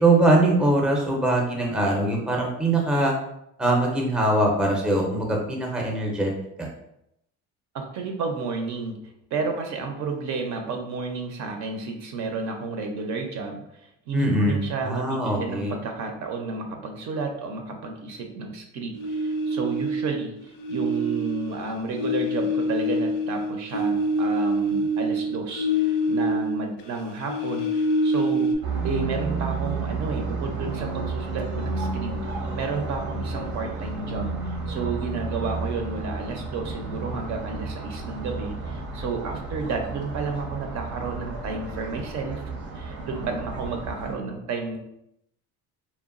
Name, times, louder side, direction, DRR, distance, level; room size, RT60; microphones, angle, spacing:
voice 1, 0.0-3.1 3.6-6.3 6.6-6.7 14.1-15.7, right 2 dB, 5° right, 0 dB, 0.5 m, -22 dB
voice 2, 7.7-9.0 9.3-28.5 28.8-32.1 32.5-42.4 42.7-44.8, right 4 dB, 60° right, 3 dB, 0.5 m, -32 dB
sound 1, 18.9-20.3 20.6-26.7 27.0-28.6, equal, 85° left, 0.5 m, -25 dB
sound 2, 28.6-44.2, right 3 dB, 85° right, 0.8 m, -32 dB
2.9 x 2.1 x 2.4 m, 0.79 s
cardioid pair, 105°, 33 cm